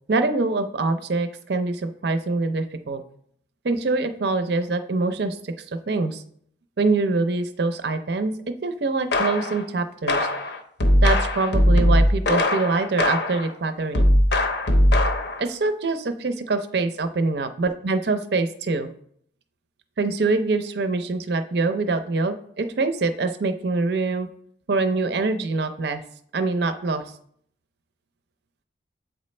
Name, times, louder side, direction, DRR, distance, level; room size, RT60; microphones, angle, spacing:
voice 1, 0.1-3.0 3.6-5.5 5.9-6.2 6.8-10.3 11.0-14.1 15.4-18.9 20.0-24.3 24.7-26.0 26.3-27.0, right 3 dB, 60° right, 9 dB, 0.5 m, -24 dB
sound 1, 9.1-9.6 10.1-13.5 13.9-15.4, left 1 dB, 60° left, 0.6 m, -20 dB
7.9 x 4.1 x 3.2 m, 0.65 s
head